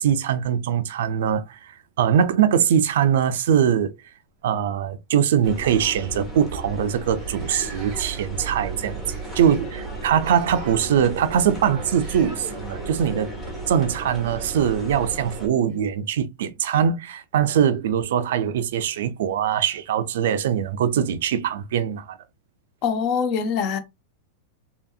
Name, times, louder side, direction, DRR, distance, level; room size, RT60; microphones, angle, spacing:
voice 1, 0.0-1.7 2.0-3.9 4.4-9.0 9.3-13.3 13.7-22.2, right 8 dB, 70° right, 0.4 m, -22 dB
sound 1, 3.4-3.7 4.7-4.9 5.3-5.5 6.2-6.3 6.5-6.6 7.2-8.5 9.1-9.7 10.2-10.8 11.9-12.4 14.5-14.6 15.7-15.8, right 4 dB, 35° right, 0.6 m, -44 dB
sound 2, 5.4-15.5, right 2 dB, 5° left, 0.9 m, -34 dB
voice 2, 22.8-23.8, left 6 dB, 35° left, 0.5 m, -23 dB
2.8 x 2.7 x 2.3 m
supercardioid pair, 165°, 0 cm